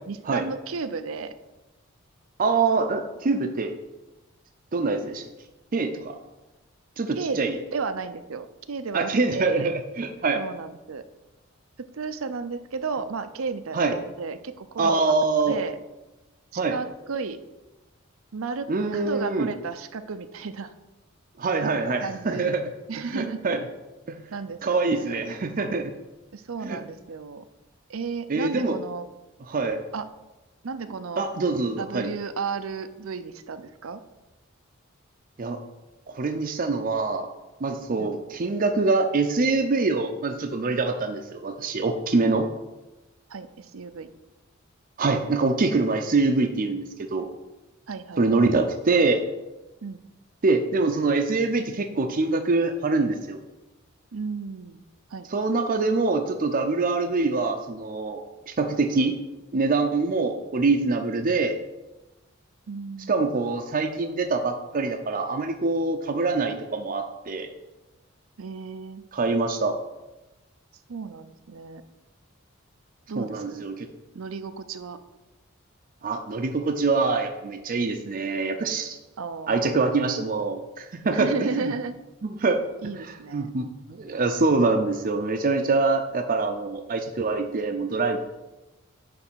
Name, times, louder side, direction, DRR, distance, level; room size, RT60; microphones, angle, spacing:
voice 1, 0.1-1.3 7.1-7.4 7.7-9.7 10.4-11.0 11.9-14.9 15.5-15.8 16.5-17.4 18.3-20.7 22.0-22.5 22.9-23.4 24.3-25.2 26.3-27.4 27.9-29.0 29.9-30.0 30.6-31.3 31.8-34.0 38.0-38.1 43.3-44.1 47.9-48.5 49.8-50.0 54.1-54.8 55.1-55.3 62.7-63.3 68.4-69.0 70.9-71.8 73.1-73.7 74.1-75.0 79.2-79.8 81.1-81.9 82.8-83.5, right 4 dB, 85° right, 11 dB, 0.6 m, -33 dB
voice 2, 2.4-3.7 4.7-5.3 5.7-6.2 7.0-7.6 8.9-10.4 13.7-13.9 14.8-15.6 16.6-16.8 18.7-19.5 21.4-22.7 23.1-23.6 24.1-24.2 24.6-25.9 26.6-26.8 28.3-28.8 29.5-29.8 31.2-32.1 35.4-35.6 36.1-37.3 37.6-42.5 45.0-47.3 48.2-49.2 50.4-53.4 55.3-59.2 59.5-61.6 63.1-67.5 69.1-69.8 73.2-73.9 76.0-79.0 79.5-81.7 82.2-82.6 83.1-88.2, right 3 dB, 45° right, 5 dB, 0.6 m, -24 dB
9.7 x 3.3 x 6.2 m, 1.0 s
head